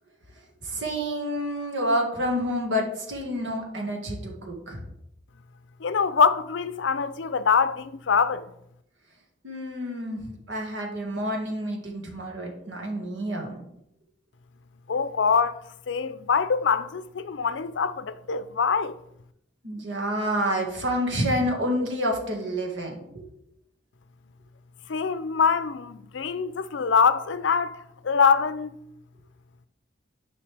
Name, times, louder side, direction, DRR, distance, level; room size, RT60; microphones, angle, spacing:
voice 1, 0.6-4.8 9.4-10.2 10.5-13.6 19.6-23.2, equal, 75° right, 1.8 m, -28 dB
voice 2, 5.8-8.5 14.9-15.6 15.9-19.0 24.9-28.7, left 6 dB, 75° left, 0.5 m, -24 dB
10.0 x 5.5 x 3.3 m
head